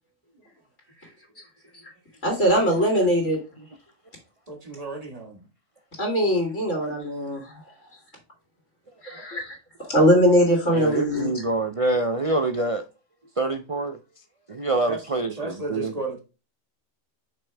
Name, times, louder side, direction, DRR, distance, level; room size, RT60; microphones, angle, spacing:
voice 1, 2.2-3.4 6.0-7.6 9.0-9.6 9.9-11.4, equal, 60° left, 2.6 m, -21 dB
voice 2, 4.5-5.5 14.9-15.0 15.3-16.2, right 2 dB, 30° right, 1.6 m, -34 dB
voice 3, 10.7-12.8 13.4-14.0 14.5-15.9, right 2 dB, 60° right, 0.3 m, -25 dB
6.1 x 5.2 x 3.3 m
omnidirectional pair, 1.4 m